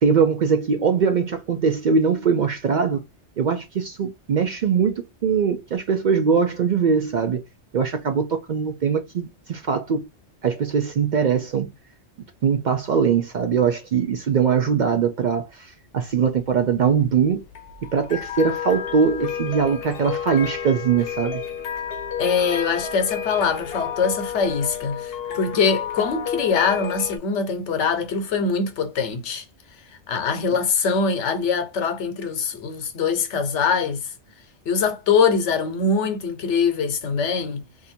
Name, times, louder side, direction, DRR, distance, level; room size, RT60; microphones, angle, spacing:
voice 1, 0.0-3.0 3.4-4.9 5.2-7.4 7.7-10.0 10.4-11.7 12.4-17.4 17.9-21.4, right 6 dB, 60° right, 0.5 m, -21 dB
sound 1, 16.1-27.2, left 8 dB, 60° left, 0.9 m, -31 dB
voice 2, 22.2-29.5 30.1-34.1 34.6-37.7, left 5 dB, 85° left, 1.1 m, -23 dB
2.7 x 2.6 x 4.2 m
omnidirectional pair, 1.2 m